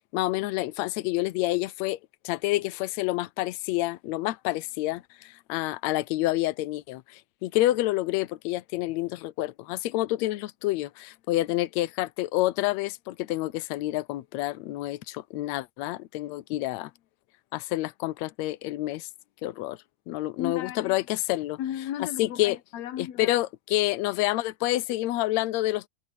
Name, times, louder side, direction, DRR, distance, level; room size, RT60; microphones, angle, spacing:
voice 1, 0.1-2.0 2.2-16.9 17.5-19.1 19.4-19.8 20.1-21.6 22.2-22.6 23.0-25.9, left 17 dB, 90° left, 1.5 m, -28 dB
voice 2, 20.4-21.0 21.6-23.4, left 10 dB, 65° left, 2.0 m, -35 dB
omnidirectional pair, 3.9 m